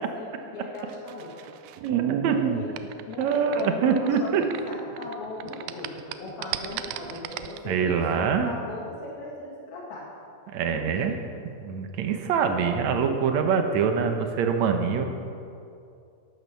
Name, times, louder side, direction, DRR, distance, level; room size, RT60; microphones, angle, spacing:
voice 1, 0.0-1.5 2.2-2.7 3.1-10.0 10.7-11.2, left 2 dB, 75° left, -4 dB, 4.1 m, -38 dB
sound 1, 0.8-5.1 5.4-7.6, right 11 dB, 90° right, 2.5 m, -32 dB
voice 2, 1.8-2.4 3.2-4.4 7.7-8.5 10.5-11.2 11.6-15.0, right 6 dB, 70° right, 5 dB, 1.8 m, -24 dB
14.0 x 11.5 x 6.9 m, 2.5 s
omnidirectional pair, 4.3 m